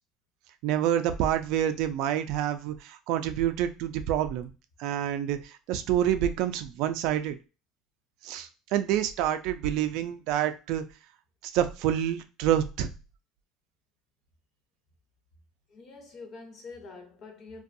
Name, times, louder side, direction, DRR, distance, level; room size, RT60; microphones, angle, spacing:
voice 1, 0.6-4.5 4.8-7.4 8.2-10.8 11.4-12.9, right 11 dB, 65° right, 0.3 m, -27 dB
voice 2, 15.7-17.6, left 3 dB, 35° left, 0.7 m, -45 dB
2.5 x 2.3 x 2.5 m
cardioid pair, 150°, 0 cm